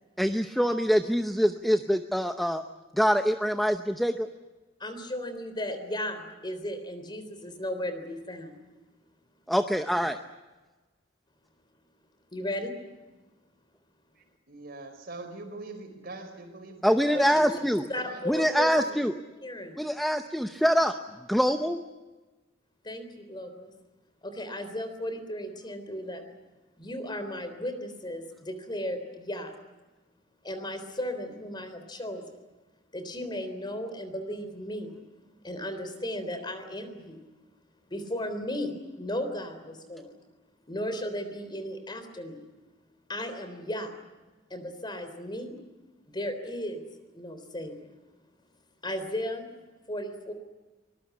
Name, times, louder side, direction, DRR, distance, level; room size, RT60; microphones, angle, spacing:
voice 1, 0.2-2.6 2.9-4.3 9.5-10.2 16.8-17.8 18.3-19.1 19.8-20.9 21.3-21.8, equal, ahead, 6 dB, 0.8 m, -24 dB
voice 2, 4.8-8.6 12.3-12.7 17.1-17.6 17.9-18.7 19.4-19.8 22.8-23.7 24.2-26.4 26.8-29.5 30.4-32.4 32.9-35.0 35.4-37.3 37.9-40.2 40.7-42.5 43.1-43.9 44.5-45.6 46.1-46.8 47.1-48.0 48.8-49.5 49.9-50.3, left 1 dB, 25° left, 9 dB, 3.6 m, -35 dB
voice 3, 14.2-17.5 17.8-19.0, right 2 dB, 55° right, 7 dB, 4.4 m, -43 dB
24.5 x 20.5 x 8.4 m, 1.2 s
head